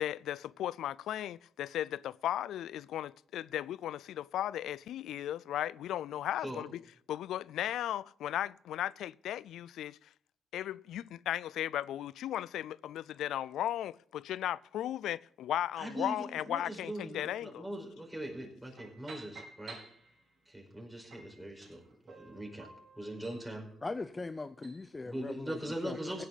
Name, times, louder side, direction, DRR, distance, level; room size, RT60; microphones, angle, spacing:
voice 1, 0.0-6.8 7.1-10.0 10.5-17.7, left 11 dB, 85° left, 0.4 m, -36 dB
voice 2, 15.8-16.1 16.5-19.8 20.5-21.8 22.0-22.7 23.0-23.7 25.0-26.3, right 1 dB, 10° right, 4.9 m, -41 dB
sound 1, 18.8-20.5 21.1-24.9, right 3 dB, 60° right, 5.3 m, -53 dB
voice 3, 23.8-25.6 25.8-26.2, left 3 dB, 25° left, 0.6 m, -40 dB
16.5 x 9.5 x 4.0 m
cardioid pair, 95°, 0 cm